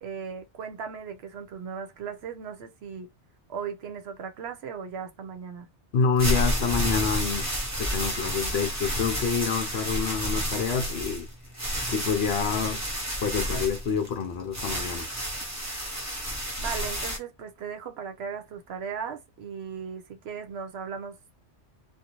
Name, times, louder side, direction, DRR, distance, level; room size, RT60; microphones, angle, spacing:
voice 1, 0.0-3.1 3.5-5.7 16.6-21.3, right 6 dB, 65° right, 0.8 m, -37 dB
voice 2, 5.9-7.5 7.8-11.3 11.9-12.8 13.2-15.1, left 6 dB, 65° left, 0.8 m, -27 dB
sound 1, 6.0-17.2, equal, 15° right, 0.8 m, -30 dB
2.6 x 2.4 x 2.9 m
omnidirectional pair, 1.2 m